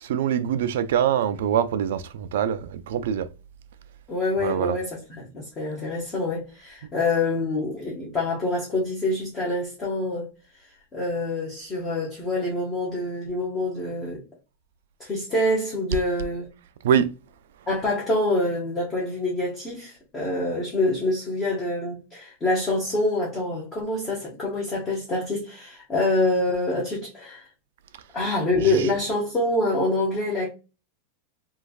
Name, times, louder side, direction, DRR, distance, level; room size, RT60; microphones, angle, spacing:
voice 1, 0.0-3.3 4.4-4.8 15.9-16.0 16.8-17.1 28.5-29.0, right 9 dB, 75° right, 0.4 m, -24 dB
voice 2, 4.1-10.3 10.9-14.2 15.0-16.5 17.7-27.5 28.1-30.5, left 2 dB, 20° left, 0.9 m, -26 dB
3.1 x 2.3 x 2.3 m
supercardioid pair, 160°, 0 cm